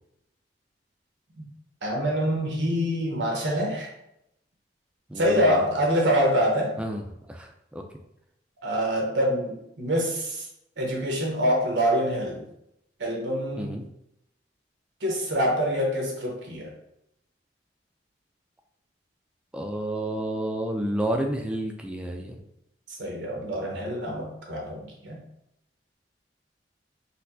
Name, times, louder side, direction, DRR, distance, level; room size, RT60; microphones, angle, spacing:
voice 1, 1.8-3.9 5.2-6.7 8.6-10.5 10.8-12.4 13.0-13.7 15.0-16.7 23.0-25.2, equal, 85° right, -1 dB, 0.9 m, -25 dB
voice 2, 5.1-5.7 6.8-7.8 13.6-13.9 19.5-22.4, right 1 dB, 5° right, 3 dB, 0.3 m, -30 dB
4.2 x 2.1 x 2.6 m, 0.80 s
head